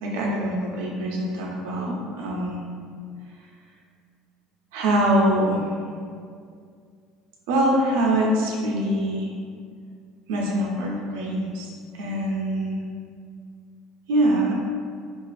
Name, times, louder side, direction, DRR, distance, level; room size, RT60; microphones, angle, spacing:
voice 1, 0.0-2.6 4.7-5.7 7.5-9.3 10.3-11.7 11.9-12.8 14.1-14.5, right 1 dB, 80° right, -3 dB, 0.5 m, -23 dB
2.4 x 2.3 x 2.3 m, 2.2 s
supercardioid pair, 85°, 0 cm